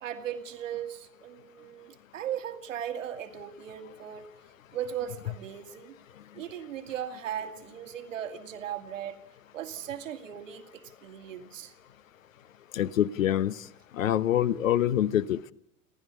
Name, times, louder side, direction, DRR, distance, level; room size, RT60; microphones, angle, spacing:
voice 1, 0.0-4.3 4.7-6.0 6.3-9.2 9.5-11.7, right 9 dB, 60° right, 7 dB, 2.2 m, -37 dB
voice 2, 12.7-13.5 14.0-15.5, left 11 dB, 65° left, 17 dB, 0.9 m, -25 dB
30.0 x 12.5 x 8.4 m, 0.81 s
figure-of-eight pair, 85°, 43 cm